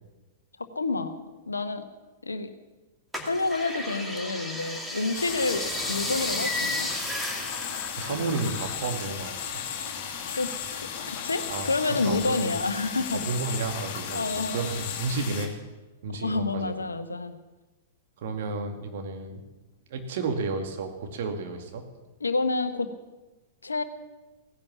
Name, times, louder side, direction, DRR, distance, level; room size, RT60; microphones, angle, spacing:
voice 1, 0.7-1.2 1.5-1.9 2.2-2.5 3.2-6.9 8.1-8.2 10.3-10.5 11.1-13.2 14.1-14.6 16.1-17.3 22.2-22.9 23.6-23.8, left 3 dB, 80° left, 10 dB, 1.1 m, -28 dB
sound 1, 3.1-9.0 9.2-10.5 11.0-11.8 12.3-12.4, left 1 dB, ahead, 2.2 m, -34 dB
sound 2, 5.1-15.5, left 8 dB, 40° left, 2.6 m, -35 dB
voice 2, 8.0-9.4 11.5-12.5 13.1-15.5 16.0-16.7 18.2-19.4 19.9-21.8, right 4 dB, 55° right, 4 dB, 2.2 m, -32 dB
17.0 x 11.0 x 7.1 m, 1.1 s
figure-of-eight pair, 100°, 0 cm